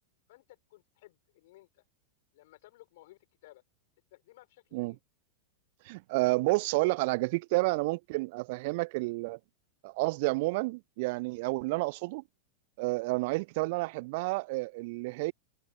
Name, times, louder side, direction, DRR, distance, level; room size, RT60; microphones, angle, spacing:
voice 1, 0.3-1.8 2.3-3.6 4.1-5.0 13.2-13.4, left 18 dB, 55° left, 7.1 m, -57 dB
voice 2, 5.8-9.4 9.8-12.2 12.8-15.3, right 24 dB, 50° right, 0.7 m, -30 dB
figure-of-eight pair, 90°, 0 cm